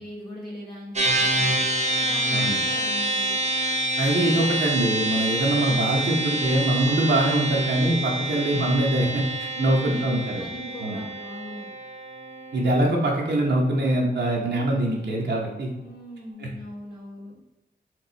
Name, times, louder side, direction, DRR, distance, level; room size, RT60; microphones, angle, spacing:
voice 1, 0.0-1.6 2.0-3.4 9.5-10.1 10.3-11.7 15.8-17.4, left 1 dB, 55° left, -7 dB, 1.5 m, -39 dB
sound 1, 1.0-14.5, right 1 dB, 35° right, 0.7 m, -28 dB
voice 2, 4.0-10.4 10.8-11.0 12.5-15.7 16.4-16.5, right 1 dB, 65° right, -1 dB, 0.8 m, -23 dB
4.5 x 2.3 x 3.9 m, 0.99 s
cardioid pair, 65°, 19 cm